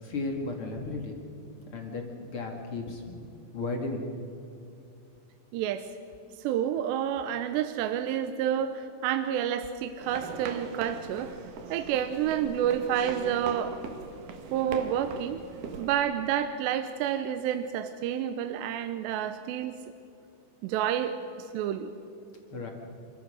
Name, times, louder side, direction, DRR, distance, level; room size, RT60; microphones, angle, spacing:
voice 1, 0.0-1.1 1.7-3.3 3.5-4.3 22.5-22.7, left 3 dB, 40° left, 2 dB, 2.1 m, -34 dB
voice 2, 5.5-5.9 6.4-11.3 11.7-13.8 14.5-15.4 15.8-19.7 20.6-21.9, right 9 dB, 85° right, 9 dB, 2.8 m, -29 dB
sound 1, 10.0-16.0, right 5 dB, 60° right, 2.6 m, -41 dB
28.5 x 14.5 x 6.5 m, 2.6 s
omnidirectional pair, 5.2 m